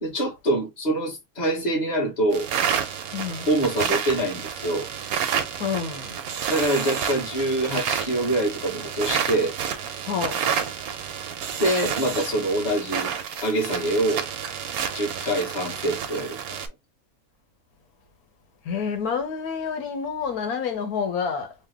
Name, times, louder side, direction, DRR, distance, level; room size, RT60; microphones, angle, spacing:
voice 1, 0.0-2.5 3.5-4.9 6.5-9.5 11.6-13.1 13.4-14.3 14.9-16.4, right 1 dB, 30° left, 1.4 m, -25 dB
sound 1, 2.3-16.7, right 8 dB, 80° right, 1.1 m, -29 dB
voice 2, 3.1-3.5 5.6-6.2 10.1-10.5 18.6-21.5, left 6 dB, 85° left, 1.3 m, -28 dB
3.2 x 2.2 x 3.4 m
omnidirectional pair, 1.5 m